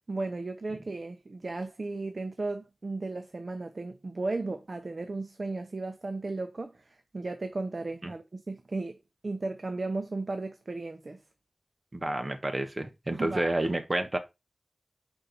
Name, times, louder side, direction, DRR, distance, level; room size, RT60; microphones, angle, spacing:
voice 1, 0.0-9.0 9.2-11.2 13.1-13.6, right 3 dB, 45° right, 0.8 m, -35 dB
voice 2, 11.9-14.2, right 1 dB, 30° right, 1.3 m, -29 dB
5.7 x 4.5 x 5.2 m
wide cardioid pair, 85°, 0 cm